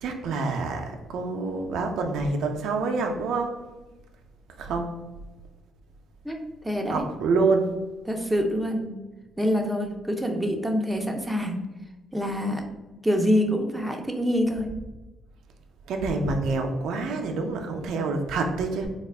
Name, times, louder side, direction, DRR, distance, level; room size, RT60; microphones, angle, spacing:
voice 1, 0.0-3.5 4.6-5.0 6.9-7.7 15.9-18.9, right 3 dB, 80° right, 4 dB, 0.4 m, -27 dB
voice 2, 6.6-7.1 8.0-8.9 9.4-11.6 12.1-12.6 13.0-14.7, equal, 5° right, 2 dB, 0.5 m, -25 dB
3.5 x 2.3 x 3.3 m, 1.1 s
cardioid pair, 90°, 0 cm